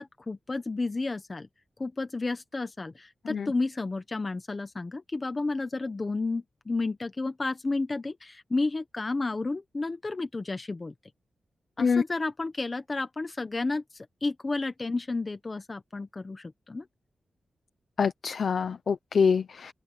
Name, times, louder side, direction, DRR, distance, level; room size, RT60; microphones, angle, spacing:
voice 1, 0.0-1.5 1.8-10.9 11.8-16.9, left 3 dB, 25° left, 1.1 m, -32 dB
voice 2, 18.0-19.7, left 6 dB, 55° left, 0.8 m, -25 dB
open air
wide cardioid pair, 160°, 0 cm